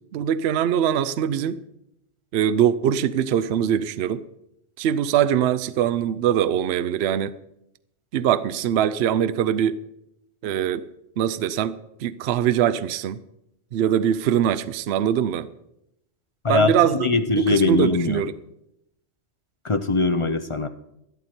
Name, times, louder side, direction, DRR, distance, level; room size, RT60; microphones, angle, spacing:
voice 1, 0.1-1.6 2.3-4.2 4.8-7.3 8.1-9.8 10.4-10.8 11.2-13.2 13.7-15.5 16.5-18.3, right 9 dB, 70° right, 0.8 m, -22 dB
voice 2, 16.4-18.2 19.6-20.7, left 3 dB, 35° left, 0.5 m, -22 dB
12.5 x 11.5 x 4.4 m
omnidirectional pair, 1.2 m